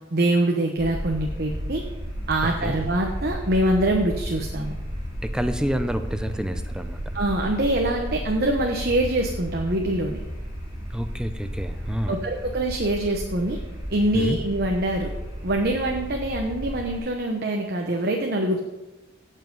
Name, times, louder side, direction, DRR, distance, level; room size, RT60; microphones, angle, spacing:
voice 1, 0.1-1.8 2.3-4.7 7.1-10.2 12.1-13.6 13.9-15.1 15.4-18.6, right 1 dB, 50° right, 2 dB, 1.0 m, -24 dB
sound 1, 0.8-17.0, equal, 20° right, 4.0 m, -33 dB
voice 2, 2.4-2.8 5.2-7.0 10.9-12.2 14.1-14.4, equal, 5° right, 8 dB, 0.6 m, -28 dB
16.5 x 5.6 x 5.4 m, 1.1 s
head